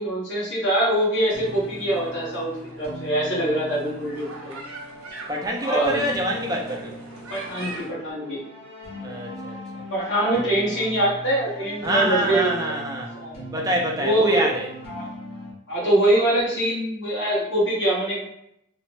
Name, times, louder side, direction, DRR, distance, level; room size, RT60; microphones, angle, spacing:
voice 1, 0.0-4.6 5.6-6.0 7.3-8.4 9.9-12.8 13.2-13.5 14.0-14.5 14.9-15.1 15.7-18.2, right 1 dB, 55° left, -9 dB, 1.1 m, -23 dB
sound 1, 1.1-7.9, right 2 dB, 80° right, 0.7 m, -42 dB
sound 2, 1.3-15.5, equal, 25° left, 0.9 m, -40 dB
voice 2, 5.3-7.0 9.0-9.8 11.8-13.1 13.5-14.7, right 1 dB, 15° right, 0 dB, 0.3 m, -26 dB
2.9 x 2.0 x 3.0 m, 0.74 s
head